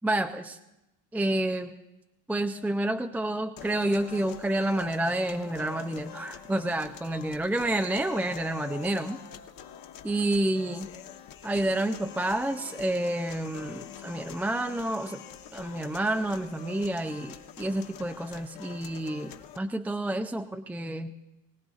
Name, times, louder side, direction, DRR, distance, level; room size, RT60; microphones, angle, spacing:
voice 1, 0.0-0.6 1.1-1.7 2.3-9.2 10.0-10.9 11.4-15.2 15.5-21.1, right 1 dB, 5° right, 6 dB, 0.4 m, -29 dB
sound 1, 3.6-19.6, left 10 dB, 45° left, 1.2 m, -45 dB
24.5 x 17.0 x 2.4 m, 0.95 s
hypercardioid pair, 80°, 48 cm